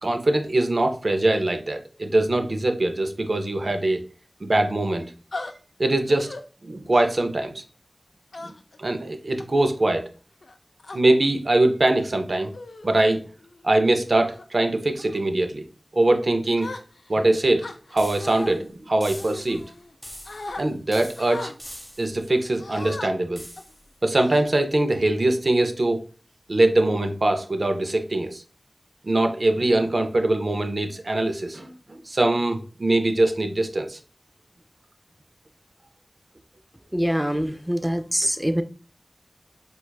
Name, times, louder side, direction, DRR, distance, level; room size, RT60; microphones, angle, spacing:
voice 1, 0.0-4.0 4.4-5.1 5.8-6.3 6.6-7.6 8.4-8.5 8.8-10.1 10.9-12.5 12.8-13.2 13.6-15.6 15.9-16.7 17.1-17.7 17.9-19.6 20.6-21.5 22.0-23.4 24.0-26.0 26.5-28.4 29.0-34.0, right 2 dB, 65° right, 0.5 m, -22 dB
sound 1, 5.3-5.5 6.1-6.4 6.9-7.2 8.3-8.8 9.4-9.7 10.4-11.0 11.8-12.0 12.5-12.9 13.4-13.6 14.1-14.5 15.0-15.2 16.6-17.2 17.6-18.5 19.2-20.0 20.3-20.6 21.2-21.6 22.6-23.1 23.6-23.7 24.2-24.8, left 2 dB, 85° left, 0.3 m, -38 dB
sound 2, 18.0-18.6 19.0-19.6 20.0-20.6 20.9-22.2 23.4-23.9, equal, 5° left, 1.0 m, -43 dB
voice 2, 36.9-38.6, equal, 10° right, 0.4 m, -24 dB
4.4 x 2.3 x 2.3 m
wide cardioid pair, 45°, 0 cm